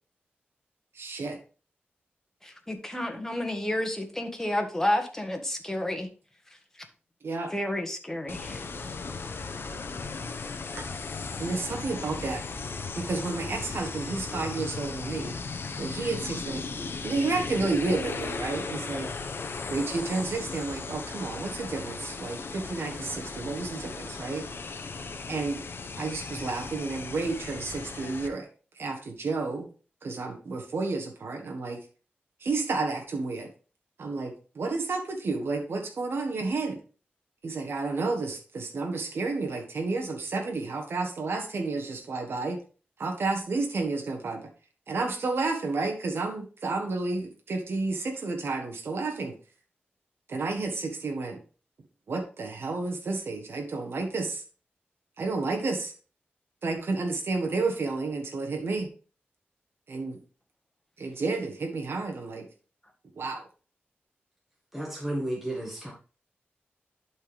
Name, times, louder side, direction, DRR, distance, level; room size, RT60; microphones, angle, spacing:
voice 1, 0.9-1.4 7.2-7.5 10.8-10.9 11.4-12.4 12.9-15.4 15.8-16.7 17.0-19.2 19.7-24.5 25.3-25.6 26.0-28.5 28.7-29.7 30.0-31.8 32.4-33.5 34.0-36.8 37.4-42.6 43.0-44.4 44.9-49.4 50.3-51.4 52.1-54.4 55.2-55.9 56.6-58.9 59.9-60.2 61.0-62.5 63.2-63.4, right 3 dB, 75° right, 3 dB, 1.4 m, -31 dB
voice 2, 2.4-6.1 7.5-8.6, left 1 dB, 10° left, 3 dB, 1.7 m, -30 dB
sound 1, 8.3-28.3, left 4 dB, 70° left, 0.9 m, -36 dB
voice 3, 64.7-65.9, right 1 dB, 5° right, -2 dB, 1.9 m, -32 dB
11.5 x 4.6 x 3.5 m, 0.36 s
wide cardioid pair, 90°, 4 cm